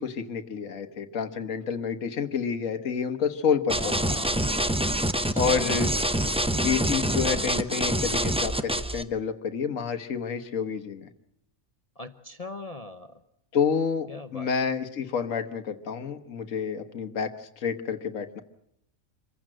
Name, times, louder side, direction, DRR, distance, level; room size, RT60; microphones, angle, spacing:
voice 1, 0.0-4.0 5.4-5.9 6.5-11.1 13.5-18.4, left 6 dB, 65° left, 7 dB, 1.6 m, -29 dB
voice 2, 3.7-4.4 5.3-5.9 12.0-13.2 14.1-14.5, left 2 dB, 30° left, 9 dB, 0.8 m, -39 dB
sound 1, 3.7-9.0, right 1 dB, 5° right, 0.5 m, -26 dB
25.5 x 15.5 x 7.7 m, 0.80 s
omnidirectional pair, 1.5 m